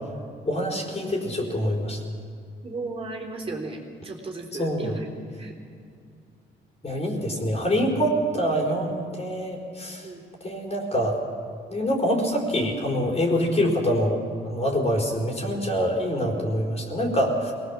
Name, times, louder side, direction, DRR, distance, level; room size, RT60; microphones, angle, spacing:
voice 1, 0.4-2.0 4.6-4.9 6.8-10.1 10.4-11.2 11.7-17.5, equal, 30° left, 0 dB, 4.8 m, -25 dB
voice 2, 2.6-5.1 5.4-5.5 10.0-10.2, right 3 dB, 30° right, -1 dB, 3.6 m, -35 dB
22.5 x 19.5 x 7.5 m, 2.3 s
cardioid pair, 90°, 20 cm